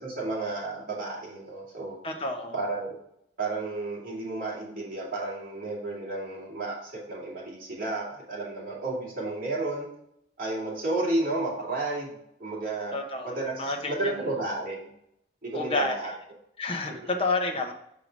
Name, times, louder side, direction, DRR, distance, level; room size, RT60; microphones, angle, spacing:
voice 1, 0.0-2.0 2.5-2.9 3.4-9.9 10.4-13.0 13.2-14.9 15.4-16.1 16.9-17.1, right 2 dB, 45° right, -6 dB, 2.7 m, -32 dB
voice 2, 2.0-2.6 12.9-14.2 15.5-15.9 16.6-17.7, left 2 dB, 30° left, 3 dB, 0.9 m, -30 dB
5.7 x 5.4 x 4.7 m, 0.75 s
head